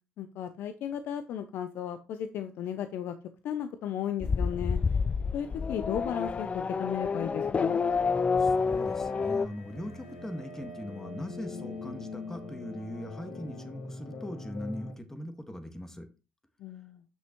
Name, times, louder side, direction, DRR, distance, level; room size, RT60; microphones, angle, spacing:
voice 1, 0.2-3.2 3.4-4.8 5.3-7.8 16.6-17.0, left 9 dB, 70° left, 9 dB, 0.7 m, -35 dB
Race car auto racing / Accelerating revving vroom, 4.2-9.5, left 5 dB, 35° left, 0.4 m, -28 dB
sound 1, 8.0-14.9, left 2 dB, 90° left, 2.0 m, -42 dB
voice 2, 8.4-16.1, left 1 dB, 10° left, 7 dB, 1.8 m, -40 dB
8.4 x 6.1 x 3.1 m, 0.31 s
supercardioid pair, 65°, 4 cm